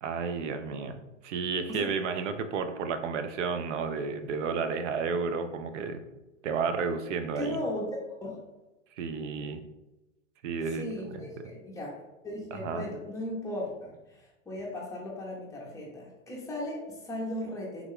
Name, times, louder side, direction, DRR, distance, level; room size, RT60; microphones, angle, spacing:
voice 1, 0.0-6.0 6.4-7.6 9.0-9.6 10.4-10.8 11.1-11.3 12.5-12.9, right 5 dB, 70° right, 8 dB, 0.5 m, -32 dB
voice 2, 7.4-7.9 8.2-8.4 10.7-17.8, left 1 dB, 10° left, -3 dB, 0.6 m, -37 dB
3.5 x 2.2 x 3.5 m, 1.0 s
hypercardioid pair, 140°, 38 cm